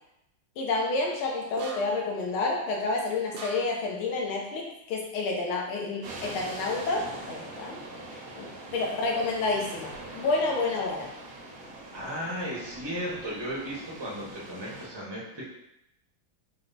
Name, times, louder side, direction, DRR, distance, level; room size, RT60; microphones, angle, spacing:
voice 1, 0.6-7.8 8.4-8.5 8.7-11.1, left 3 dB, 90° left, -1 dB, 1.7 m, -29 dB
sound 1, 1.6-2.1 3.3-3.9, right 3 dB, 80° right, 1.4 m, -41 dB
sound 2, 6.0-14.9, right 2 dB, 60° right, 0.9 m, -43 dB
voice 2, 11.9-15.5, equal, 30° right, -6 dB, 0.4 m, -35 dB
4.6 x 2.2 x 3.9 m, 0.84 s
omnidirectional pair, 2.2 m